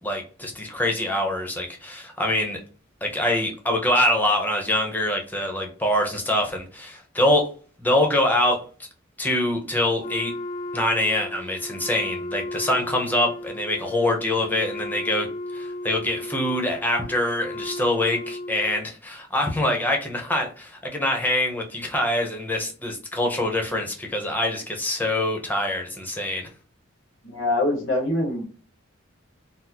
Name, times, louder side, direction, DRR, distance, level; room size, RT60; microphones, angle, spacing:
voice 1, 0.0-2.6 3.0-7.5 7.8-8.6 9.2-10.3 10.7-15.3 15.5-26.5, left 1 dB, 10° left, 2 dB, 0.8 m, -24 dB
Wind instrument woodwind instrument, 10.0-18.8, left 1 dB, 40° left, 0.3 m, -35 dB
voice 2, 27.2-28.5, left 2 dB, 85° left, -1 dB, 1.1 m, -24 dB
4.0 x 2.1 x 2.9 m, 0.38 s
head